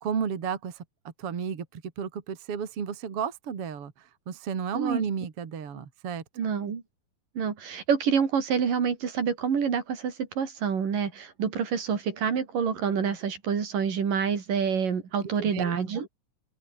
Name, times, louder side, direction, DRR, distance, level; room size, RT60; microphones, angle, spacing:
voice 1, 0.0-6.2 15.2-16.0, right 7 dB, 45° right, 3.0 m, -33 dB
voice 2, 6.4-6.8 7.4-16.1, right 7 dB, 65° right, 4.9 m, -27 dB
open air
omnidirectional pair, 4.2 m